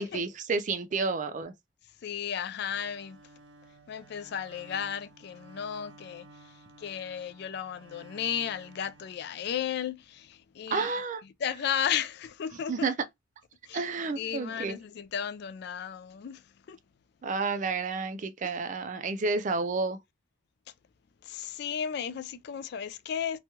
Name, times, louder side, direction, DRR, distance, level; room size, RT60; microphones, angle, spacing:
voice 1, 0.0-1.5 10.7-11.2 12.7-12.9 13.7-14.8 17.2-20.0, right 4 dB, 40° right, 0.4 m, -30 dB
voice 2, 2.0-3.2 3.9-6.3 6.8-10.9 11.4-12.9 13.6-13.9 14.2-16.8 21.2-23.4, left 8 dB, 60° left, 0.3 m, -34 dB
Bowed string instrument, 2.7-9.9, right 2 dB, 85° right, 0.9 m, -54 dB
3.0 x 2.3 x 2.7 m
head